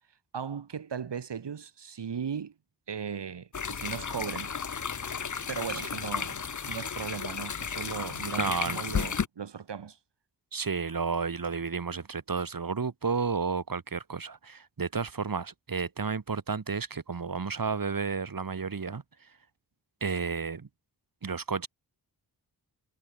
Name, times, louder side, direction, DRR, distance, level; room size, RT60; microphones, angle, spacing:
voice 1, 0.3-2.5 2.9-4.5 5.5-10.0, right 7 dB, 85° right, 3.5 m, -37 dB
sound 1, 3.5-9.3, left 6 dB, 45° left, 1.1 m, -33 dB
voice 2, 8.4-8.8 10.5-19.0 20.0-20.7 21.2-21.7, right 5 dB, 55° right, 3.8 m, -32 dB
wide cardioid pair, 95°, 41 cm